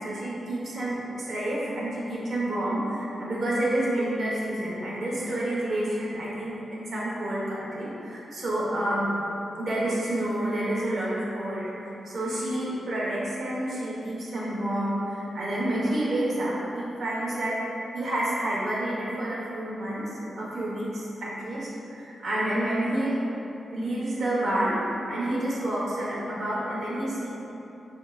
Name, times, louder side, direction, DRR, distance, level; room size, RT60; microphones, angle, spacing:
voice 1, 0.0-9.1 9.6-23.2 23.7-24.8 25.1-27.3, right 1 dB, 60° right, -6 dB, 1.0 m, -29 dB
6.2 x 2.8 x 2.3 m, 2.9 s
cardioid pair, 100°, 0 cm